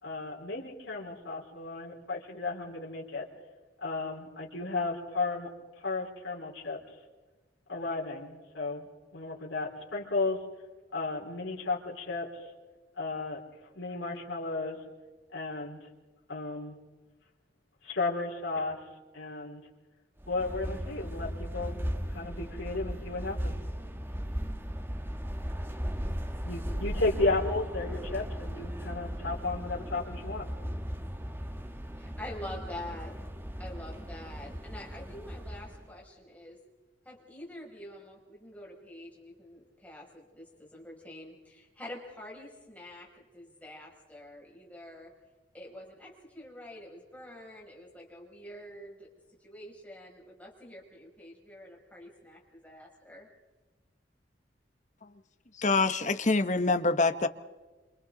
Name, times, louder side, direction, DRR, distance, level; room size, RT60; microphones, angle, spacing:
voice 1, 0.0-3.3 3.8-5.5 5.8-6.8 7.7-10.4 10.9-12.3 12.9-13.4 13.7-14.8 15.3-15.8 16.3-16.8 17.8-18.8 19.1-19.6 20.3-21.8 22.1-23.6 26.4-30.5, left 3 dB, 85° left, -2 dB, 4.6 m, -34 dB
sound 1, 20.2-35.9, equal, 10° right, 1.5 m, -37 dB
voice 2, 32.0-33.1 33.6-36.6 37.0-45.1 45.5-49.1 49.4-53.3, left 1 dB, 10° left, -3 dB, 6.7 m, -46 dB
voice 3, 55.6-57.3, left 3 dB, 40° left, 10 dB, 1.2 m, -25 dB
28.0 x 27.5 x 4.0 m, 1.2 s
head